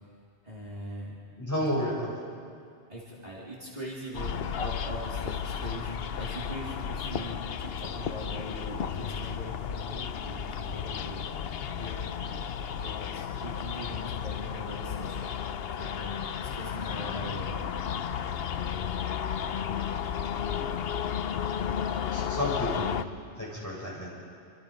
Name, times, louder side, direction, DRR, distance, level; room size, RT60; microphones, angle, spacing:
voice 1, 0.4-1.2 2.9-11.3 11.8-12.1 12.7-15.3 15.8-17.6, equal, 35° right, -6 dB, 3.6 m, -41 dB
voice 2, 1.4-2.2 21.9-22.9 23.4-24.1, equal, 15° left, -5 dB, 7.2 m, -31 dB
sound 1, 4.1-23.0, left 8 dB, 60° left, 0.9 m, -33 dB
27.5 x 26.0 x 5.2 m, 2.3 s
omnidirectional pair, 1.2 m